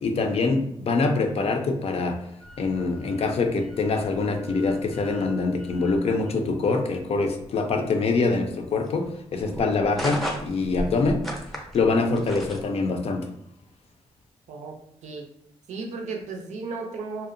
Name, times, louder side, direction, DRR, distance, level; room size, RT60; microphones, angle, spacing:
voice 1, 0.0-2.2 2.6-11.2 11.7-13.3, left 3 dB, 60° left, 5 dB, 0.4 m, -24 dB
sound 1, 2.4-12.6, equal, ahead, 0.6 m, -38 dB
voice 2, 15.7-17.3, right 4 dB, 85° right, 3 dB, 0.5 m, -34 dB
2.6 x 2.0 x 2.5 m, 0.75 s
cardioid pair, 70°, 12 cm